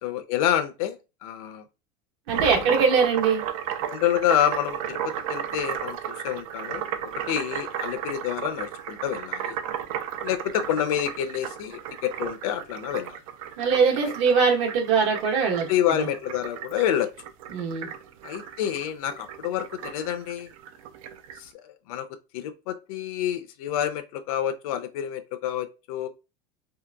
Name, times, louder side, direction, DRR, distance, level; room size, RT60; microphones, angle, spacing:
voice 1, 0.0-1.7 2.5-2.6 3.9-9.5 10.2-13.2 15.7-17.1 18.2-20.5 21.4-22.1 22.3-26.1, left 10 dB, 85° left, 0.5 m, -28 dB
voice 2, 2.3-3.4 13.6-15.7 16.0-16.1 17.5-17.9, right 5 dB, 60° right, 1.0 m, -22 dB
sound 1, 2.3-21.4, right 9 dB, 80° right, 0.4 m, -34 dB
2.8 x 2.5 x 2.3 m
supercardioid pair, 180°, 17 cm